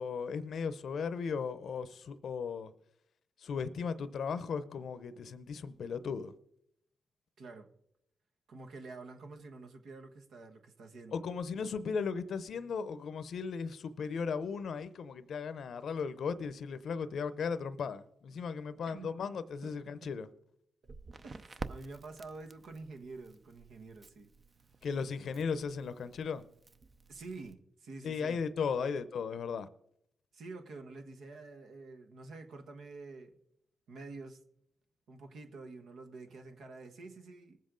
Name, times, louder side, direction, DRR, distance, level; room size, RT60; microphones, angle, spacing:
voice 1, 0.0-2.7 3.4-6.3 11.1-20.3 24.8-26.4 28.0-29.7, left 5 dB, 70° left, 0.7 m, -36 dB
voice 2, 7.4-7.7 8.5-11.3 18.9-19.2 19.6-20.1 21.2-24.3 27.1-28.4 30.3-33.3 33.9-34.4 35.1-37.6, right 3 dB, 80° right, 1.3 m, -48 dB
Crackle, 20.8-27.5, right 3 dB, 40° right, 0.7 m, -50 dB
19.5 x 7.5 x 3.8 m
cardioid pair, 60°, 0 cm